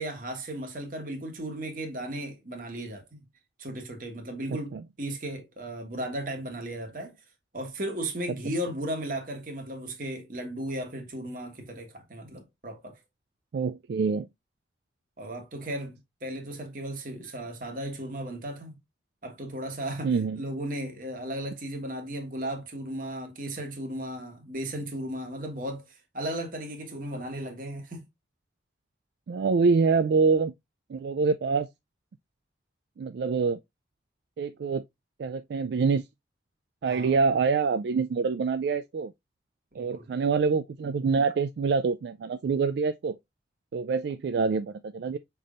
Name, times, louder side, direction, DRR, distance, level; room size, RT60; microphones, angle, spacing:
voice 1, 0.0-3.2 3.6-7.2 7.5-13.0 15.2-18.7 19.2-28.0 36.9-37.1 39.7-40.2, right 1 dB, 50° right, 1.4 m, -35 dB
voice 2, 4.5-4.8 13.5-14.3 20.0-20.4 29.3-30.5 30.9-31.7 33.0-33.6 34.4-34.8 35.2-36.0 36.8-39.1 39.7-43.2 43.7-45.2, right 5 dB, 70° right, 0.3 m, -26 dB
5.8 x 3.5 x 2.4 m
head